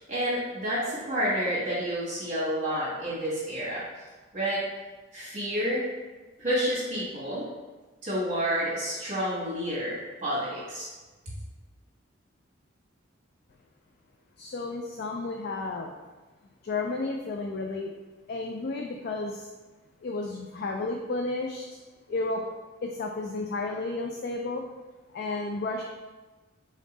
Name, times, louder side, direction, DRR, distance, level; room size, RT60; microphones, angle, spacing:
voice 1, 0.0-3.8 4.3-4.7 5.1-5.9 6.4-7.5 8.0-10.9, equal, 40° right, -8 dB, 1.2 m, -29 dB
voice 2, 14.4-15.9 16.6-17.9 18.3-19.5 20.0-21.8 22.1-22.5 22.8-24.6 25.1-25.8, left 3 dB, 50° left, 2 dB, 0.3 m, -32 dB
3.7 x 3.5 x 3.9 m, 1.2 s
head